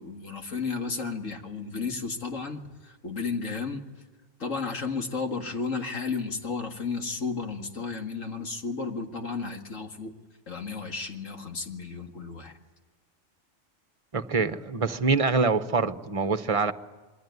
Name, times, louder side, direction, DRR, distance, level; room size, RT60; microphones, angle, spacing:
voice 1, 0.0-3.8 4.4-10.1 10.5-12.5, left 4 dB, 80° left, 4 dB, 2.4 m, -33 dB
voice 2, 14.1-16.7, right 4 dB, 30° right, 11 dB, 0.9 m, -25 dB
27.0 x 22.0 x 9.5 m, 1.3 s
omnidirectional pair, 1.3 m